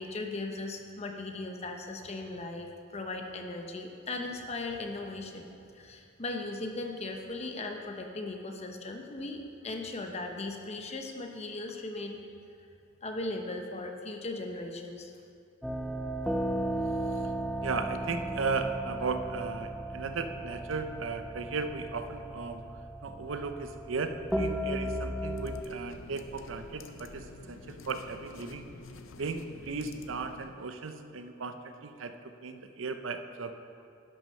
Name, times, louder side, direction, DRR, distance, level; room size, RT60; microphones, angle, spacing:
voice 1, 0.0-5.5 5.7-12.2 13.0-15.1, left 2 dB, 35° left, 3 dB, 0.9 m, -38 dB
sound 1, 15.6-25.6, right 1 dB, ahead, 0.4 m, -35 dB
voice 2, 17.6-22.6 23.0-28.6 29.2-32.1 32.4-33.5, right 4 dB, 80° right, 8 dB, 0.6 m, -36 dB
sound 2, 25.2-30.6, left 3 dB, 80° left, 0.6 m, -49 dB
11.0 x 6.2 x 5.5 m, 2.4 s
head